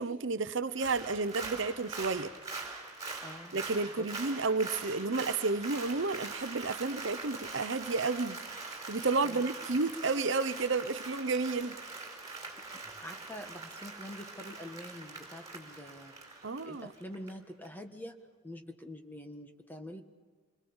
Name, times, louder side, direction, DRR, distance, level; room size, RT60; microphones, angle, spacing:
voice 1, 0.0-2.3 3.5-8.4 8.9-11.7 16.4-16.9, right 3 dB, 65° right, 0.8 m, -31 dB
Applause, 0.7-17.3 17.6-17.7, right 3 dB, 20° right, 4.8 m, -43 dB
voice 2, 3.2-3.5 4.0-4.1 9.2-9.5 13.0-18.2 18.4-20.0, equal, 10° left, 1.6 m, -46 dB
28.0 x 21.5 x 7.2 m
head